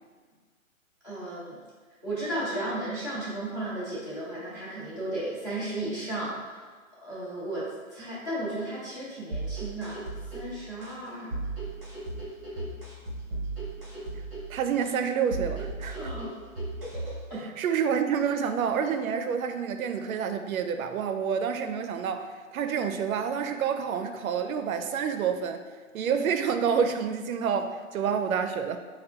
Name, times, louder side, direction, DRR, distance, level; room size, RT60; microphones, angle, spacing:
voice 1, 1.0-1.6 2.0-6.6 7.0-10.0 10.3-11.4 15.9-16.3 17.3-17.5, right 1 dB, 15° left, -11 dB, 0.6 m, -34 dB
sound 1, 9.3-17.3, right 2 dB, 15° right, 0.8 m, -36 dB
voice 2, 14.5-16.1 17.3-25.6 25.9-28.8, right 7 dB, 90° right, 8 dB, 0.5 m, -28 dB
4.2 x 2.3 x 3.3 m, 1.5 s
hypercardioid pair, 170°, 41 cm